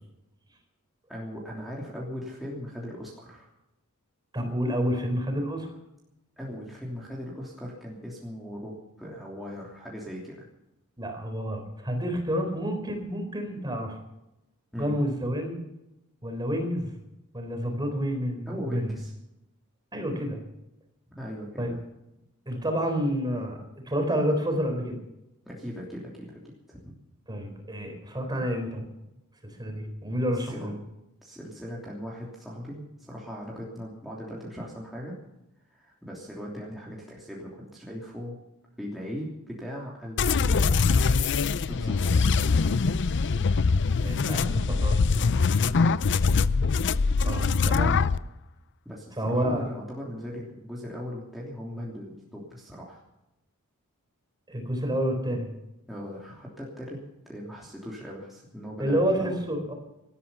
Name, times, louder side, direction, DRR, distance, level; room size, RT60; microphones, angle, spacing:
voice 1, 1.1-3.5 6.4-10.5 14.7-15.0 18.5-19.1 21.1-21.8 25.5-26.9 30.5-30.8 31.2-35.2 35.7-38.4 38.8-41.0 41.7-42.4 48.8-53.0 55.9-59.4, equal, ahead, -5 dB, 3.1 m, -39 dB
voice 2, 4.3-5.7 11.0-14.0 14.8-15.6 16.2-16.9 17.3-18.9 19.9-20.4 21.6-21.7 22.5-23.6 23.8-24.9 27.3-28.8 29.6-30.8 44.0-45.0 47.2-48.0 49.2-49.7 54.5-55.5 58.8-59.7, equal, 20° right, 4 dB, 4.1 m, -29 dB
sound 1, 40.2-48.2, left 4 dB, 55° left, 0.6 m, -23 dB
18.5 x 13.0 x 5.7 m, 0.90 s
head